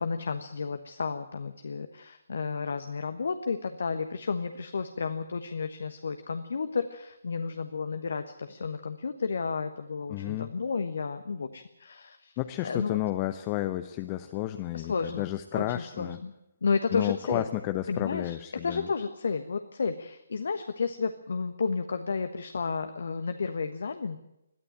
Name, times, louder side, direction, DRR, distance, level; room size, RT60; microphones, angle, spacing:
voice 1, 0.0-12.3 12.6-13.0 14.7-15.2 15.5-16.3 16.6-17.4 17.9-18.4 18.6-24.2, left 5 dB, 55° left, 9 dB, 1.3 m, -32 dB
voice 2, 10.1-10.5 12.4-16.2 16.9-18.9, left 15 dB, 25° left, 9 dB, 0.8 m, -32 dB
21.5 x 14.0 x 9.1 m, 0.88 s
figure-of-eight pair, 135°, 0 cm